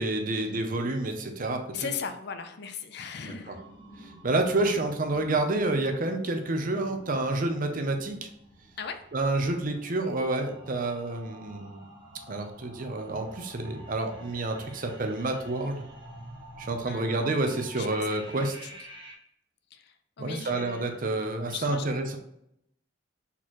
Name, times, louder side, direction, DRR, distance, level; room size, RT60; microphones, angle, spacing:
voice 1, 0.0-1.9 3.5-3.6 4.0-8.3 9.1-11.8 12.3-15.8 16.6-18.6 20.2-22.2, right 2 dB, 45° right, 5 dB, 0.7 m, -29 dB
voice 2, 1.7-3.6 8.8-9.0 16.9-18.7 19.7-21.1 21.5-22.1, left 6 dB, 60° left, 9 dB, 0.5 m, -39 dB
sound 1, 3.5-19.1, right 1 dB, 25° right, 1.0 m, -49 dB
4.2 x 4.1 x 3.0 m, 0.77 s
head